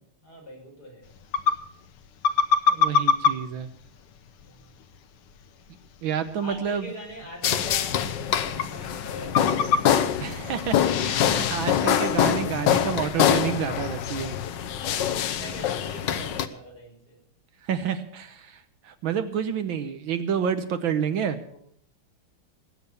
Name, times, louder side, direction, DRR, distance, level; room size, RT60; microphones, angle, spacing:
voice 1, 0.2-1.1 4.4-4.7 6.4-9.9 14.7-17.2 21.4-21.6, equal, 45° left, -1 dB, 6.3 m, -43 dB
sound 1, 1.0-16.0, left 5 dB, 90° left, 1.9 m, -30 dB
voice 2, 2.7-3.7 6.0-6.9 10.2-14.4 17.6-21.4, right 8 dB, 70° right, 10 dB, 1.6 m, -29 dB
sound 2, 7.4-16.5, left 9 dB, 65° left, 1.4 m, -25 dB
19.5 x 8.7 x 6.9 m, 0.65 s
omnidirectional pair, 2.4 m